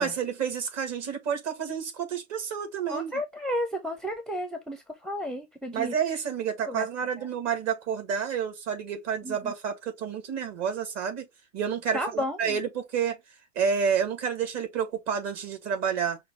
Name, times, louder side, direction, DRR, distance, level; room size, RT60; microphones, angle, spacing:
voice 1, 0.0-3.2 5.7-11.3 11.5-13.2 13.6-16.2, right 7 dB, 40° right, 2.0 m, -29 dB
voice 2, 2.9-5.9 6.7-6.9 7.2-7.3 9.2-9.5 11.9-12.6, left 1 dB, ahead, 0.7 m, -32 dB
5.8 x 2.4 x 3.2 m
hypercardioid pair, 95°, 41 cm